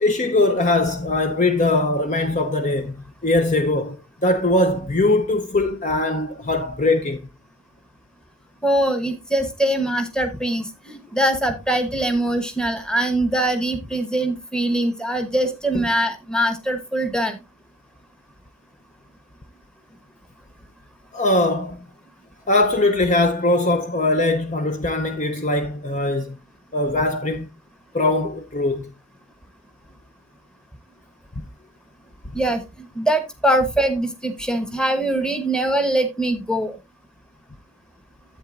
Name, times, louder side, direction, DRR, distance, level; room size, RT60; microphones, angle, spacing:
voice 1, 0.0-3.0 3.2-7.2 15.7-15.8 21.1-21.8 22.5-26.4 26.7-27.5 27.9-28.9 31.4-31.5, left 2 dB, 35° left, 0.6 m, -21 dB
voice 2, 8.6-17.4 32.3-36.8, right 1 dB, 5° left, 1.1 m, -22 dB
11.0 x 8.4 x 2.5 m
head